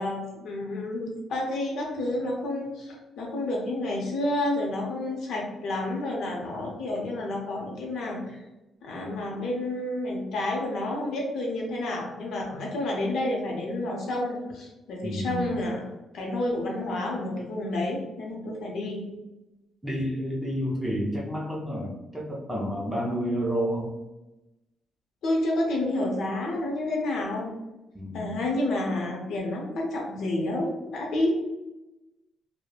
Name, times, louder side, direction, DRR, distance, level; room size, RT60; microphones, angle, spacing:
voice 1, 0.0-8.4 8.8-15.8 16.1-19.2 25.2-27.5 28.1-31.3, left 1 dB, 70° left, -1 dB, 0.5 m, -30 dB
voice 2, 15.0-15.5 19.8-23.9 27.9-28.4, equal, 5° right, -5 dB, 0.4 m, -30 dB
2.9 x 2.0 x 2.2 m, 1.0 s
cardioid pair, 145°, 0 cm